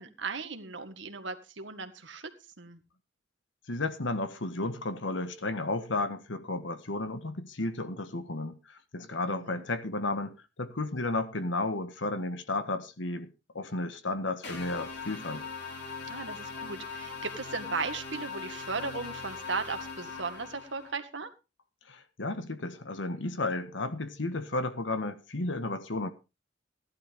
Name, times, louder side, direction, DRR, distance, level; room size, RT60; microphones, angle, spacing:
voice 1, 0.0-2.3 2.6-2.8 9.3-9.6 16.1-21.3, right 4 dB, 75° right, 1.8 m, -37 dB
voice 2, 3.7-15.4 21.9-26.1, left 2 dB, 80° left, 1.5 m, -33 dB
sound 1, 14.4-20.9, left 5 dB, 60° left, 4.7 m, -40 dB
15.5 x 11.5 x 3.5 m
head